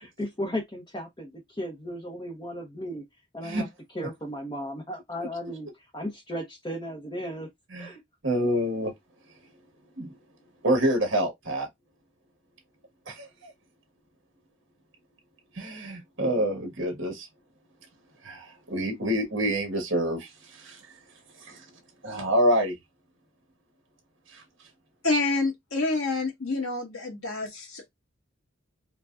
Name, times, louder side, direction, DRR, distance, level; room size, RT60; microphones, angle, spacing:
voice 1, 0.0-3.0 3.3-3.7 3.9-7.5 7.8-8.0, equal, 20° left, 0.8 m, -35 dB
voice 2, 8.2-8.9 10.0-10.1 10.6-11.7 13.1-13.5 15.5-17.3 18.2-20.8 21.4-21.6 22.0-22.7 24.3-24.4, equal, 65° right, 1.6 m, -27 dB
voice 3, 25.0-27.9, left 3 dB, 85° left, 1.5 m, -28 dB
4.5 x 2.3 x 2.5 m
head